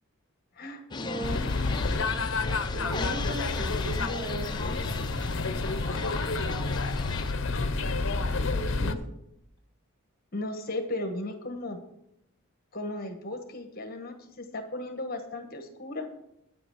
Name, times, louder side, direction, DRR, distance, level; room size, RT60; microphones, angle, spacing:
sound 1, 0.9-7.3, left 4 dB, 20° left, 0.5 m, -38 dB
voice 1, 1.0-1.5 2.7-4.8 8.3-9.0, right 1 dB, 45° right, -4 dB, 4.5 m, -37 dB
sound 2, 1.2-8.9, left 3 dB, 60° left, 0.7 m, -29 dB
voice 2, 10.3-11.8 12.7-16.1, left 2 dB, 45° left, 5 dB, 1.3 m, -35 dB
9.7 x 7.8 x 6.3 m, 0.81 s
head